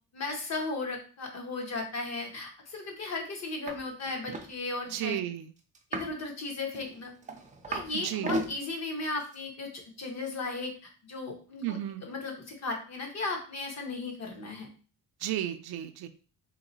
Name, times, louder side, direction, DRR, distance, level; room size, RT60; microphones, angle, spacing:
voice 1, 0.1-5.2 5.9-7.1 7.7-14.7, left 3 dB, 45° left, 2 dB, 1.0 m, -36 dB
sound 1, 3.7-3.8 4.1-4.5 5.8-6.2 6.7-7.9 8.2-8.5 9.2-9.4, right 1 dB, 20° right, 0.4 m, -34 dB
voice 2, 4.9-5.5 7.9-8.4 11.6-12.0 15.2-16.1, right 12 dB, 85° right, 9 dB, 0.5 m, -33 dB
3.1 x 2.9 x 3.9 m, 0.39 s
cardioid pair, 165°, 37 cm